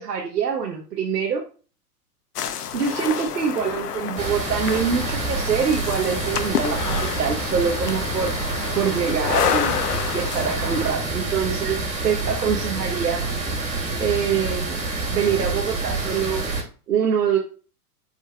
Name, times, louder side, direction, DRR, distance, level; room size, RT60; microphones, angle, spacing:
voice 1, 0.0-1.5 2.7-8.4 8.7-9.8 10.1-13.2 14.0-14.8 15.1-16.5 16.9-17.4, right 7 dB, 85° right, 0 dB, 1.1 m, -24 dB
sound 1, 2.4-10.9, left 8 dB, 75° left, 0.8 m, -29 dB
sound 2, 4.2-16.6, right 3 dB, 15° right, 2.7 m, -27 dB
10.5 x 4.4 x 2.3 m, 0.37 s
hypercardioid pair, 105°, 47 cm